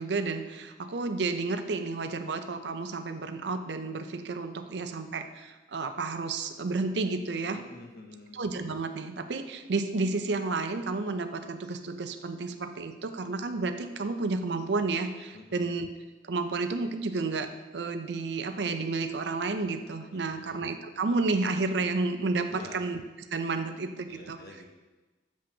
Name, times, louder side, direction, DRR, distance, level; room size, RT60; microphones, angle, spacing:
voice 1, 0.0-7.6 8.3-15.9 16.3-23.0 23.3-24.4, right 3 dB, 80° right, 8 dB, 0.6 m, -31 dB
voice 2, 7.5-8.4 15.3-15.7 20.1-20.6 22.5-22.8 24.1-24.6, left 2 dB, 55° left, 2 dB, 0.9 m, -48 dB
7.5 x 7.3 x 2.8 m, 1.2 s
head